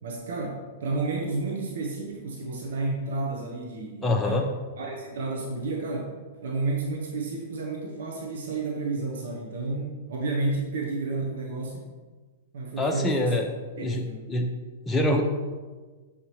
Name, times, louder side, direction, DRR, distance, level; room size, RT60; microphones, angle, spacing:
voice 1, 0.0-6.2 6.4-11.9 12.5-13.4 13.8-14.3, right 3 dB, 70° right, 0 dB, 1.0 m, -31 dB
voice 2, 4.0-4.4 12.8-13.5 13.8-14.0 14.3-14.5 14.9-15.2, left 1 dB, 10° left, 0 dB, 0.7 m, -24 dB
6.6 x 5.5 x 3.1 m, 1.3 s
hypercardioid pair, 110°, 0 cm